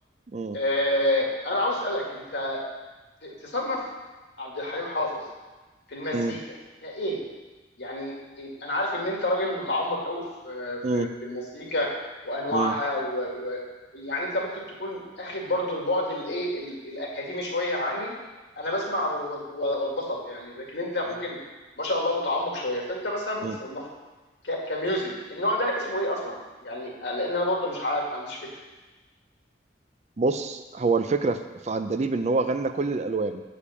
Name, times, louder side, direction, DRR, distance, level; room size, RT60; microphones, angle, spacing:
voice 1, 0.5-2.6 3.2-3.8 4.4-5.2 5.9-6.4 6.8-7.2 7.8-11.9 12.2-13.6 13.9-18.1 18.6-21.4 21.8-23.9 24.4-28.4, left 1 dB, 65° left, -2 dB, 2.1 m, -29 dB
voice 2, 30.2-33.4, right 3 dB, 35° right, 9 dB, 0.4 m, -26 dB
8.5 x 5.1 x 7.0 m, 1.2 s
head